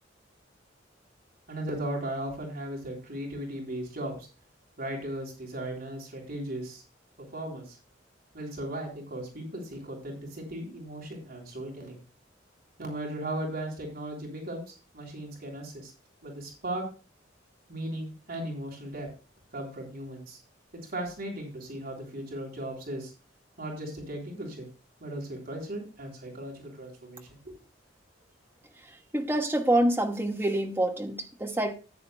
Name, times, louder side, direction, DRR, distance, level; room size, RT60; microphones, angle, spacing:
voice 1, 1.5-4.3 4.8-6.8 7.3-7.8 8.3-12.0 12.8-15.9 16.2-16.9 17.7-19.1 19.5-20.4 20.7-23.1 23.6-24.7 25.0-27.5, right 1 dB, 55° right, 3.5 m, -37 dB
voice 2, 29.1-31.7, right 1 dB, 10° right, 1.2 m, -26 dB
14.0 x 9.6 x 2.2 m
head